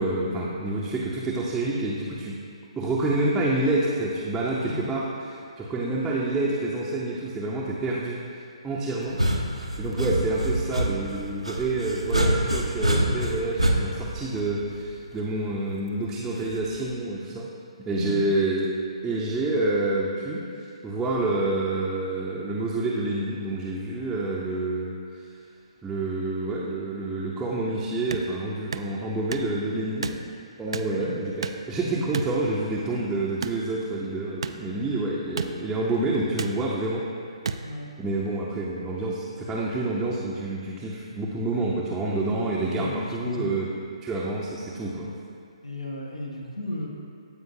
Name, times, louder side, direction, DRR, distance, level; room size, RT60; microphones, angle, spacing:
voice 1, 0.0-2.4 2.8-8.2 8.6-9.2 9.8-17.5 17.9-18.7 19.0-20.4 20.8-25.2 25.8-30.2 30.6-37.0 38.0-43.7 44.0-45.1, right 2 dB, 10° right, -7 dB, 0.6 m, -28 dB
voice 2, 4.6-5.0 17.9-18.3 30.9-31.2 37.6-37.9 42.7-43.6 45.6-46.9, left 1 dB, 75° left, 0 dB, 1.2 m, -34 dB
sound 1, 9.0-15.1 16.5-16.9, right 1 dB, 85° right, 0.9 m, -26 dB
sound 2, 28.1-28.3 28.7-28.9 29.3-29.5 30.0-30.2 30.7-30.9 31.4-31.7 32.1-32.3 33.4-33.6 34.4-34.5 35.4-35.5 36.4-36.5 37.4-37.6, right 5 dB, 55° right, 0.4 m, -30 dB
15.5 x 5.2 x 2.7 m, 2.3 s
figure-of-eight pair, 135°, 3 cm